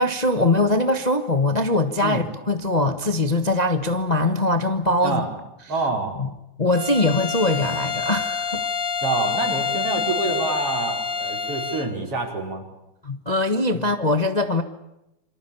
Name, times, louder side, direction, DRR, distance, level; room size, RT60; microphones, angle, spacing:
voice 1, 0.0-5.2 6.2-6.3 6.6-8.7 13.0-14.6, left 2 dB, 75° left, 0.3 m, -22 dB
voice 2, 5.7-6.2 9.0-12.6 13.7-13.9, right 3 dB, 50° right, 5.8 m, -27 dB
Bowed string instrument, 6.7-11.9, left 6 dB, 35° left, 1.5 m, -27 dB
28.0 x 25.0 x 7.1 m
omnidirectional pair, 3.5 m